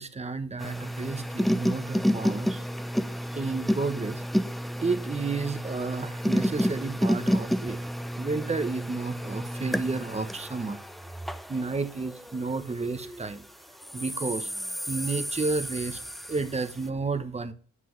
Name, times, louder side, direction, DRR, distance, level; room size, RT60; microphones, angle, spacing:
voice 1, 0.0-2.6 3.3-4.2 4.8-7.8 8.2-10.8 11.5-13.4 13.9-14.5 14.9-16.0 16.3-17.5, right 4 dB, 20° right, 9 dB, 1.1 m, -31 dB
sound 1, 0.6-13.2 13.8-16.7, equal, ahead, 0.5 m, -30 dB
9.4 x 5.8 x 3.2 m, 0.41 s
cardioid pair, 90°, 30 cm